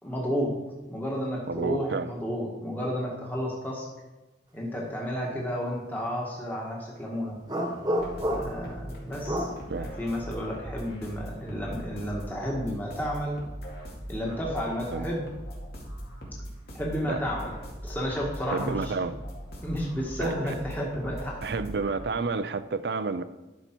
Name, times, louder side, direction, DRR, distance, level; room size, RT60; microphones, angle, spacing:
voice 1, 0.0-0.6 0.9-3.9 4.5-7.4 8.3-13.4 14.1-15.3 16.7-17.5 17.8-18.9 19.6-21.4, equal, 10° left, -3 dB, 1.4 m, -32 dB
voice 2, 1.5-2.1 5.4-5.5 9.7-9.9 14.9-15.1 17.0-17.2 18.5-19.2 20.2-20.6 21.4-23.2, right 4 dB, 70° right, 12 dB, 0.5 m, -30 dB
sound 1, 7.5-8.7 9.2-9.6, equal, 20° right, 1.2 m, -29 dB
sound 2, 8.0-21.9, equal, 65° left, 2.4 m, -40 dB
11.5 x 5.4 x 4.5 m, 1.1 s
head